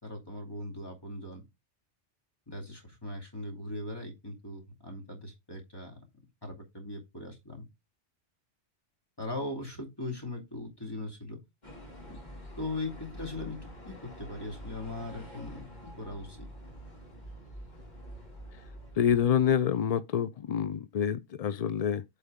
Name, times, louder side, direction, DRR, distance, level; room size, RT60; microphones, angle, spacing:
voice 1, 0.0-1.4 2.5-6.0 6.4-7.7 9.2-11.4 12.1-12.2 12.6-16.4, left 2 dB, 20° left, 2.5 m, -39 dB
sound 1, 11.6-19.5, equal, 35° left, 2.5 m, -47 dB
voice 2, 19.0-22.0, left 8 dB, 65° left, 0.4 m, -27 dB
8.4 x 4.9 x 3.6 m
omnidirectional pair, 1.2 m